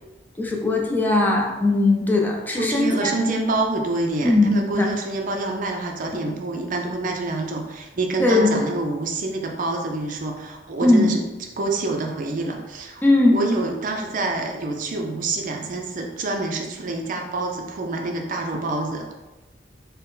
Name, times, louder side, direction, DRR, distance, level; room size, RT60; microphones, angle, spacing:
voice 1, 0.4-3.2 4.2-4.9 8.2-8.5 10.8-11.1 13.0-13.4, left 2 dB, 10° left, -1 dB, 0.5 m, -19 dB
voice 2, 2.6-11.2 11.6-13.0 13.3-19.1, right 2 dB, 45° right, 2 dB, 0.5 m, -27 dB
3.9 x 2.1 x 3.9 m, 1.1 s
head